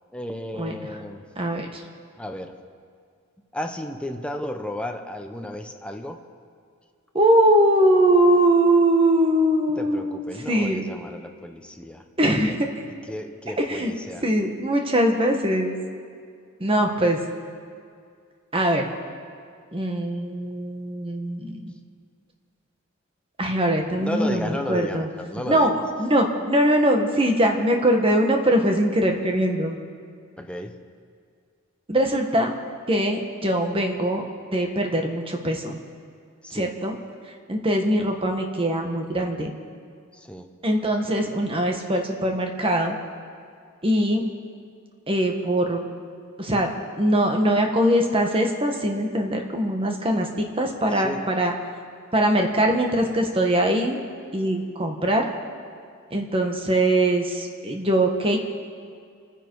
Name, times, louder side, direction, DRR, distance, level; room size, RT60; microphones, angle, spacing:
voice 1, 0.1-1.3 2.2-2.6 3.5-6.2 9.7-12.6 13.1-14.3 24.0-25.8 30.4-30.8 36.4-36.8 40.1-40.5 50.9-51.3, left 1 dB, 5° left, 4 dB, 0.9 m, -34 dB
voice 2, 1.4-1.8 7.1-10.2 10.5-10.9 12.2-12.7 13.6-13.9 14.2-15.8 16.6-17.2 18.5-18.9 19.7-21.6 23.4-25.1 25.5-25.7 26.0-29.8 31.9-32.5 32.9-34.2 34.5-35.8 36.5-37.0 37.5-39.5 40.6-42.9 43.8-44.2 45.1-45.9 46.4-51.5 52.1-54.0 54.3-55.3 56.1-58.4, right 1 dB, 25° right, 3 dB, 1.5 m, -22 dB
29.0 x 10.0 x 4.8 m, 2.2 s
head